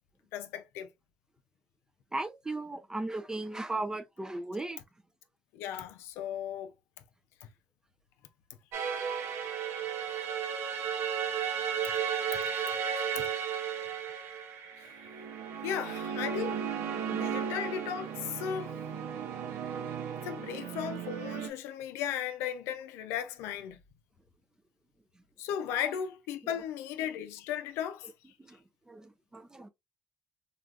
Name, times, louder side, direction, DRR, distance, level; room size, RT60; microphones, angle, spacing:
voice 1, 0.3-0.9 5.5-6.7 12.3-12.4 13.2-13.3 14.8-15.1 15.6-16.6 17.1-18.7 20.2-23.8 25.4-28.1, left 9 dB, 80° left, 0.4 m, -36 dB
voice 2, 2.1-4.8 28.4-28.6 28.9-29.7, right 2 dB, 15° right, 0.4 m, -36 dB
sound 1, 8.7-21.5, right 7 dB, 75° right, 0.7 m, -34 dB
3.3 x 2.3 x 2.4 m
supercardioid pair, 65°, 4 cm